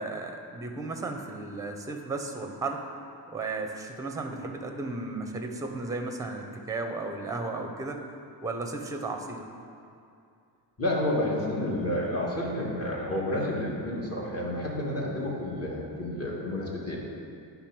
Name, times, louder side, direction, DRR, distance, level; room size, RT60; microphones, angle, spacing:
voice 1, 0.0-2.8 3.3-8.0 8.4-9.5, right 3 dB, 10° right, 4 dB, 0.5 m, -34 dB
voice 2, 10.8-17.0, left 1 dB, 35° left, -3 dB, 1.4 m, -30 dB
9.9 x 3.5 x 5.9 m, 2.5 s
wide cardioid pair, 145°, 41 cm